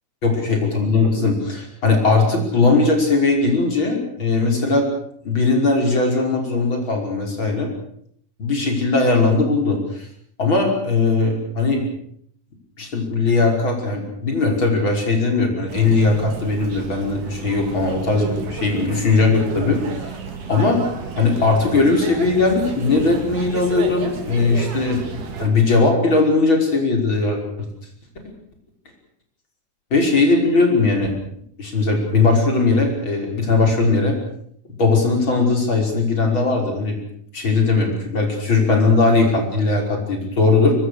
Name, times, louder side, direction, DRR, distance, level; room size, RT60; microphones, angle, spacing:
voice 1, 0.2-4.9 5.2-7.7 8.4-10.1 10.4-11.9 12.8-20.1 20.5-20.8 21.2-27.7 29.9-31.1 31.6-34.1 34.8-37.0 37.3-40.7, left 3 dB, 30° left, 2 dB, 6.2 m, -19 dB
sound 1, 15.7-25.5, right 5 dB, 85° right, 4.8 m, -31 dB
24.5 x 24.0 x 6.6 m, 0.67 s
omnidirectional pair, 4.1 m